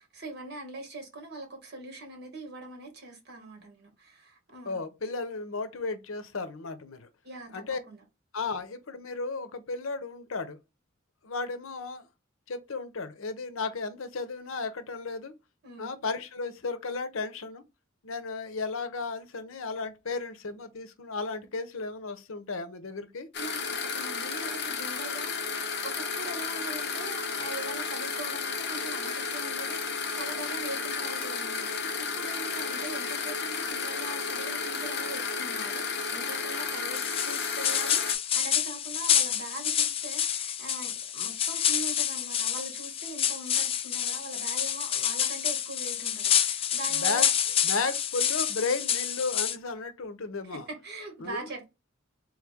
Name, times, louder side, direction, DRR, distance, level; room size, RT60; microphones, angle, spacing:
voice 1, 0.0-4.8 7.2-8.0 15.6-15.9 23.4-25.5 25.8-47.3 50.5-51.7, right 2 dB, 55° right, 1.7 m, -42 dB
voice 2, 4.7-7.1 7.5-7.8 8.3-10.6 11.2-12.0 12.5-15.3 15.8-17.6 18.0-23.3 46.9-47.3 47.6-50.7 51.2-51.5, left 4 dB, 85° left, 0.7 m, -34 dB
sound 1, 23.3-38.1, left 5 dB, 55° left, 0.8 m, -32 dB
sound 2, 36.9-49.6, left 9 dB, 30° left, 0.4 m, -28 dB
3.8 x 3.2 x 3.5 m
head